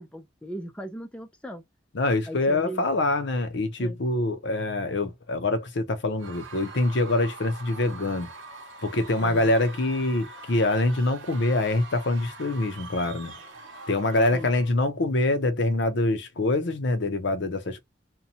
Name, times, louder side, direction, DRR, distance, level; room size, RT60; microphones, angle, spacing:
voice 1, 0.0-1.6 2.3-2.9 3.8-4.0 9.2-9.5 14.3-14.5, equal, 5° left, 0.5 m, -38 dB
voice 2, 1.9-8.3 8.8-13.3 13.9-17.8, left 2 dB, 65° left, 0.7 m, -25 dB
Screaming / Cheering / Crowd, 6.2-14.8, right 3 dB, 75° right, 0.8 m, -43 dB
2.7 x 2.2 x 2.7 m
head